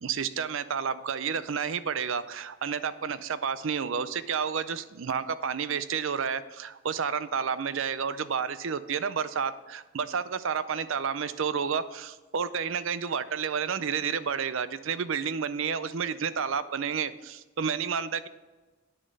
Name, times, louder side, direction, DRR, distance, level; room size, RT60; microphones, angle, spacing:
voice 1, 0.0-18.3, right 6 dB, 70° right, 14 dB, 0.5 m, -30 dB
10.5 x 6.7 x 5.4 m, 1.2 s
head